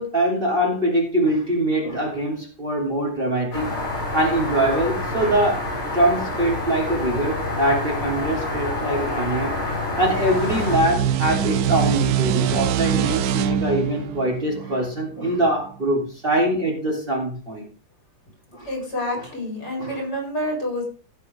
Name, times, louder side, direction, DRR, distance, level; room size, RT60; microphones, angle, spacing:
voice 1, 0.0-3.7 4.1-5.6 5.9-9.5 10.0-17.6 18.5-18.7 19.8-20.0, right 1 dB, 25° right, -1 dB, 3.4 m, -23 dB
sound 1, 3.5-10.8, left 2 dB, 85° left, 5.9 m, -27 dB
sound 2, 10.0-15.4, right 9 dB, 75° right, 0.9 m, -24 dB
voice 2, 18.6-20.9, left 1 dB, 50° left, -1 dB, 5.1 m, -28 dB
15.5 x 7.5 x 3.5 m, 0.36 s
omnidirectional pair, 2.3 m